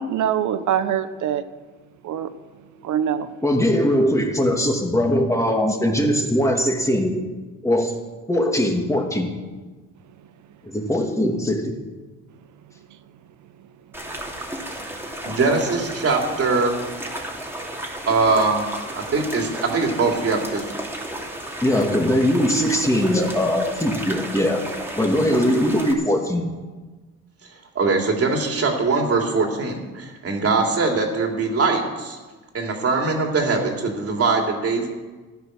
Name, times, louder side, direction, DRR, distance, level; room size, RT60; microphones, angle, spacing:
voice 1, 0.0-1.4 2.0-2.3 2.8-3.3, right 9 dB, 75° right, 12 dB, 1.0 m, -23 dB
voice 2, 3.4-7.1 7.6-7.9 8.3-9.3 10.6-11.7 21.6-24.6 24.9-26.5, equal, 10° left, 2 dB, 2.5 m, -20 dB
sound 1, 13.9-25.9, right 1 dB, 10° right, 2.5 m, -33 dB
voice 3, 15.2-16.8 18.1-18.6 18.9-20.6 27.7-32.2 32.5-34.9, right 3 dB, 50° right, 2 dB, 3.0 m, -22 dB
14.0 x 9.7 x 6.5 m, 1.3 s
cardioid pair, 90°, 30 cm